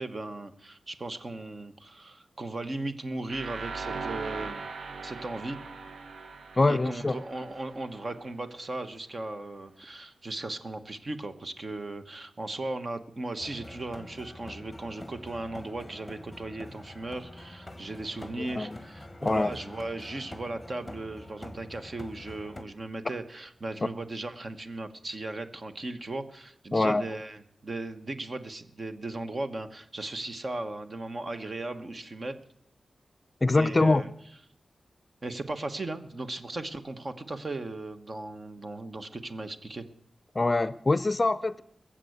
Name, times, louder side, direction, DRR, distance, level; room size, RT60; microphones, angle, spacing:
voice 1, 0.0-4.6 5.0-5.6 6.7-32.4 33.5-34.1 35.2-39.9, right 2 dB, 45° right, 8 dB, 1.2 m, -37 dB
sound 1, 3.3-8.2, right 4 dB, 90° right, 0.9 m, -39 dB
voice 2, 6.6-7.2 18.4-18.8 19.2-19.5 26.7-27.1 33.4-34.0 40.3-41.6, left 2 dB, 30° left, 16 dB, 0.5 m, -24 dB
sound 2, 13.4-22.6, left 1 dB, 10° left, 1.3 m, -45 dB
21.5 x 7.6 x 8.0 m, 0.69 s
wide cardioid pair, 90°, 0 cm